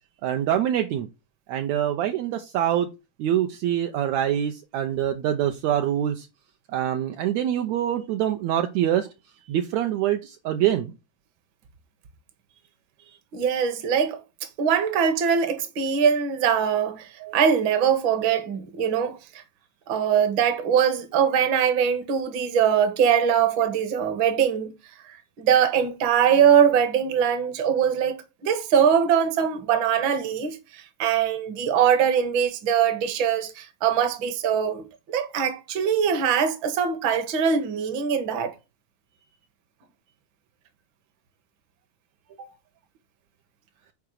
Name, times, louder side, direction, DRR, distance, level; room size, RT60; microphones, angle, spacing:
voice 1, 0.2-1.1 1.5-2.9 3.2-6.3 6.7-9.1 9.5-10.9 17.2-17.3, right 11 dB, 85° right, 1.6 m, -25 dB
voice 2, 13.3-14.2 14.6-17.1 17.3-19.2 19.9-24.7 25.4-28.2 28.4-38.5 42.4-42.5, right 8 dB, 55° right, 1.3 m, -22 dB
6.0 x 4.7 x 6.5 m
omnidirectional pair, 3.9 m